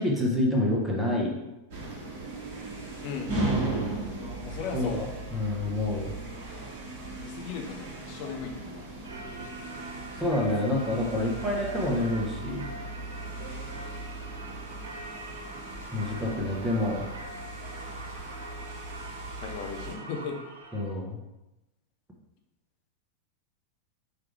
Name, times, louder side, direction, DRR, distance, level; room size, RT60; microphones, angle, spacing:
voice 1, 0.0-1.3 4.7-6.1 10.2-12.7 15.9-17.0 20.7-21.2, left 1 dB, 5° right, -2 dB, 0.9 m, -28 dB
sound 1, 1.7-20.0, right 2 dB, 45° right, 1.3 m, -37 dB
voice 2, 3.0-3.8 4.4-5.0 7.2-8.9 19.4-20.4, left 5 dB, 45° left, 3 dB, 0.7 m, -37 dB
Singing / Church bell, 9.0-20.9, right 2 dB, 70° right, 0.5 m, -43 dB
4.9 x 3.1 x 3.4 m, 0.97 s
figure-of-eight pair, 90°, 0 cm